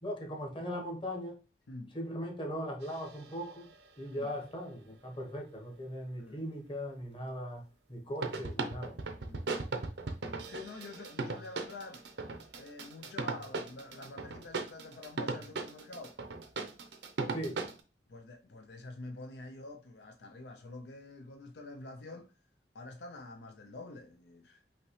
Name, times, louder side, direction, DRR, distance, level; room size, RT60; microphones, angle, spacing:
voice 1, 0.0-1.4 1.9-3.7 4.0-7.6 7.9-9.0 17.3-17.6, equal, 30° left, 1.1 m, -39 dB
sound 1, 2.8-3.9 8.2-17.8, right 3 dB, 80° right, 0.7 m, -38 dB
voice 2, 10.5-12.1 12.6-16.2 18.1-22.3 22.7-24.6, left 2 dB, 75° left, 0.5 m, -47 dB
5.6 x 2.8 x 3.1 m
head